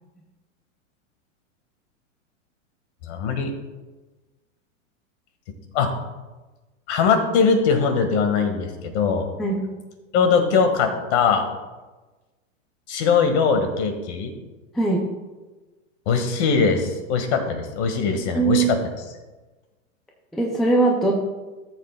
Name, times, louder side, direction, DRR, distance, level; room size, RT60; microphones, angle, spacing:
voice 1, 3.0-3.5 5.7-5.9 6.9-9.3 10.1-11.4 12.9-14.3 16.1-18.8, left 5 dB, 55° left, 6 dB, 1.7 m, -21 dB
voice 2, 18.3-18.7 20.3-21.1, right 3 dB, ahead, -1 dB, 0.3 m, -20 dB
13.5 x 7.7 x 2.3 m, 1.2 s
hypercardioid pair, 130°, 40 cm